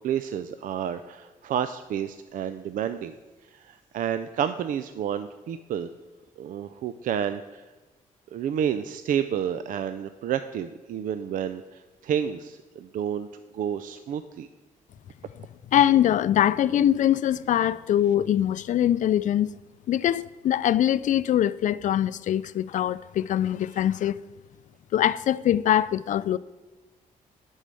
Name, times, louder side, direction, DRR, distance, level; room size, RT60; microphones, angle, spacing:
voice 1, 0.0-3.1 3.5-5.9 6.4-7.6 8.3-13.3 13.5-14.5, right 9 dB, 70° right, 0.4 m, -30 dB
voice 2, 15.7-19.5 19.9-24.2 24.9-26.4, left 11 dB, 60° left, 0.4 m, -23 dB
8.3 x 5.5 x 7.5 m
cardioid pair, 90°, 14 cm